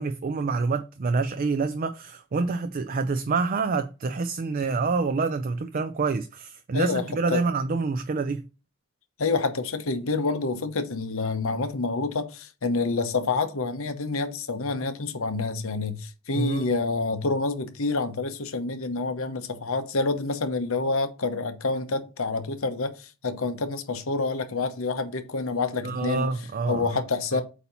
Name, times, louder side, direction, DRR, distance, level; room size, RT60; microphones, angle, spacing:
voice 1, 0.0-8.5 16.3-16.6 25.8-27.0 27.3-27.4, right 4 dB, 40° right, 0.4 m, -27 dB
voice 2, 9.2-26.3 26.7-27.4, left 3 dB, 65° left, 0.9 m, -28 dB
8.2 x 2.8 x 5.5 m
head